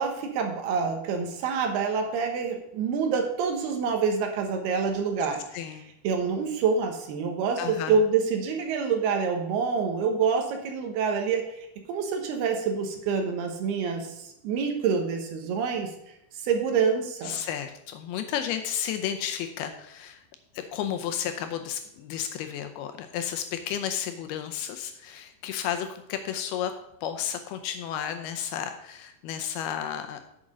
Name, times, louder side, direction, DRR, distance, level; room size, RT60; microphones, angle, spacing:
voice 1, 0.0-5.6 6.0-11.6 11.9-15.9 16.3-17.4, right 5 dB, 75° right, 4 dB, 3.0 m, -27 dB
voice 2, 5.5-5.9 7.6-8.0 17.2-20.2 20.5-26.7 27.0-30.2, left 9 dB, 80° left, 7 dB, 2.4 m, -32 dB
8.7 x 7.4 x 5.0 m, 0.79 s
omnidirectional pair, 4.8 m